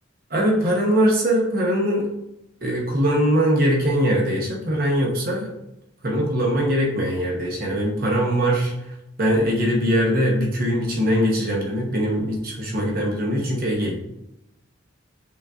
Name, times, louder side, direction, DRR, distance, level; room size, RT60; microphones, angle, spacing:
voice 1, 0.3-2.1 2.6-5.5 6.0-13.9, equal, 45° right, -2 dB, 0.9 m, -21 dB
6.9 x 2.5 x 2.3 m, 0.86 s
head